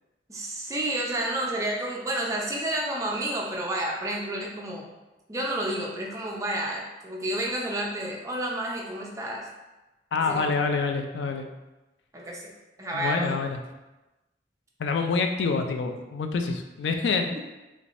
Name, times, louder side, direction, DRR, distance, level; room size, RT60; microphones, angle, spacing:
voice 1, 0.3-4.9 5.3-9.5 10.3-10.6 12.1-12.5 12.8-13.4 17.3-17.4, right 1 dB, 20° right, -3 dB, 0.5 m, -30 dB
voice 2, 10.1-11.5 12.9-13.6 14.8-17.3, left 4 dB, 75° left, 5 dB, 0.3 m, -27 dB
3.3 x 3.2 x 2.5 m, 1.1 s
head